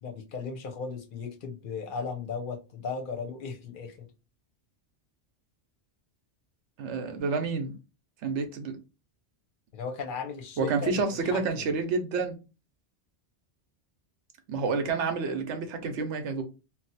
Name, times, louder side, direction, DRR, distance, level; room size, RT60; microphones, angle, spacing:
voice 1, 0.0-4.1 9.7-11.0 11.3-11.6, left 5 dB, 55° left, 0.7 m, -36 dB
voice 2, 6.8-7.7 8.2-8.8 10.6-12.4 14.5-16.4, right 4 dB, 85° right, 1.0 m, -29 dB
2.7 x 2.1 x 4.0 m
omnidirectional pair, 1.2 m